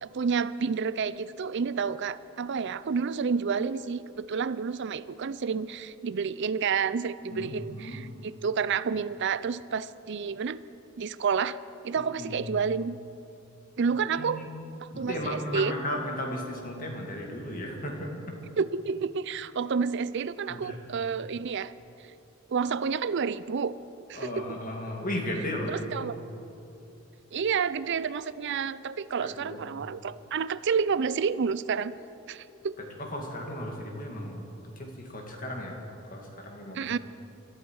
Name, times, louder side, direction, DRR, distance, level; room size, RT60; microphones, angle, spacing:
voice 1, 0.0-10.6 11.0-11.6 11.8-13.0 13.8-14.4 14.8-15.8 18.6-21.7 22.5-23.7 24.1-24.6 25.7-26.2 27.3-31.9 32.3-32.7 36.7-37.0, right 6 dB, 55° right, 16 dB, 0.4 m, -29 dB
voice 2, 7.3-8.0 12.0-12.4 14.2-14.5 14.9-18.3 20.5-20.8 24.1-26.2 29.2-29.6 33.0-35.8 36.1-36.9, left 1 dB, 40° left, 1 dB, 2.3 m, -35 dB
20.5 x 14.0 x 4.7 m, 2.8 s
head